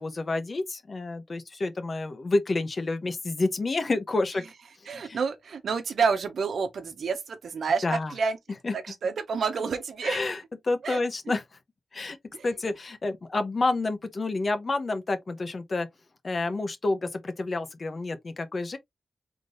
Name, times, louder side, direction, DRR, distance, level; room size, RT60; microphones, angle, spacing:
voice 1, 0.0-4.4 4.9-5.2 7.8-8.1 8.6-8.8 10.0-10.4 10.6-11.4 11.9-12.2 12.4-15.9 16.2-18.8, left 2 dB, 55° left, 1.1 m, -29 dB
voice 2, 4.9-8.4 8.7-10.2 10.8-11.0 12.3-12.5, right 5 dB, 85° right, 0.9 m, -29 dB
3.9 x 3.7 x 3.2 m
cardioid pair, 55°, 0 cm